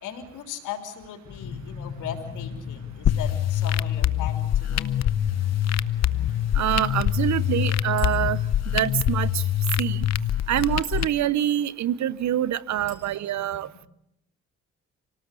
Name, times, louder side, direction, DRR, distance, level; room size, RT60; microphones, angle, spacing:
voice 1, 0.0-5.0 12.7-13.1, left 9 dB, 85° left, 6 dB, 3.5 m, -38 dB
sound 1, 1.3-9.1, left 5 dB, 45° left, 2.3 m, -41 dB
sound 2, 3.0-11.0, left 10 dB, 60° left, 0.9 m, -24 dB
voice 2, 6.5-8.4 8.7-9.4 9.8-10.1 10.5-13.9, right 11 dB, 65° right, 18 dB, 0.9 m, -25 dB
Chink clink, 8.0-8.3 10.6-11.1 12.9-13.1, right 4 dB, 85° right, 6.2 m, -46 dB
26.5 x 18.5 x 8.3 m, 0.80 s
cardioid pair, 90°, 30 cm